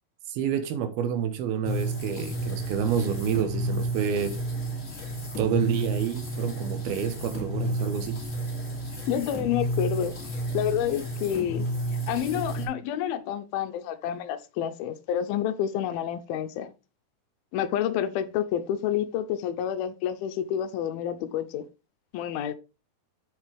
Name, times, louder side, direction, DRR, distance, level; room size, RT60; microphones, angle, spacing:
voice 1, 0.3-4.3 5.4-8.2, right 8 dB, 75° right, 3.0 m, -28 dB
sound 1, 1.6-12.7, right 1 dB, 20° left, 2.6 m, -31 dB
voice 2, 9.1-11.7 12.1-16.7 17.5-21.7 22.1-22.5, left 10 dB, 80° left, 2.5 m, -29 dB
8.2 x 6.7 x 3.4 m
omnidirectional pair, 4.4 m